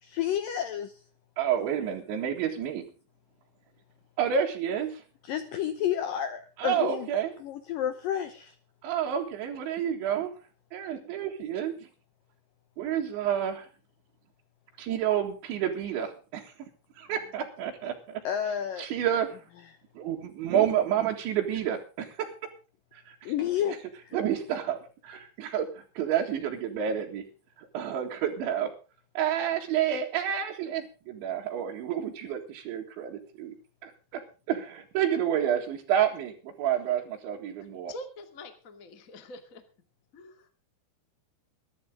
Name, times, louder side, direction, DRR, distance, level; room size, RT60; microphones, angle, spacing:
voice 1, 0.0-0.9 5.2-7.1 7.4-8.6 18.2-18.9 23.3-24.2, left 10 dB, 85° left, 10 dB, 1.9 m, -30 dB
voice 2, 1.4-2.9 4.2-5.0 6.6-7.3 8.8-10.3 10.7-11.7 12.8-13.7 14.8-16.5 17.0-18.2 18.8-19.4 20.0-22.3 22.9-23.3 24.1-24.8 25.0-27.2 27.6-28.7 29.2-33.5 33.8-34.2 34.5-37.9, right 9 dB, 75° right, -3 dB, 4.1 m, -29 dB
voice 3, 37.9-39.6 40.1-40.5, left 1 dB, 30° left, 7 dB, 1.5 m, -45 dB
22.5 x 11.5 x 3.7 m, 0.35 s
omnidirectional pair, 5.4 m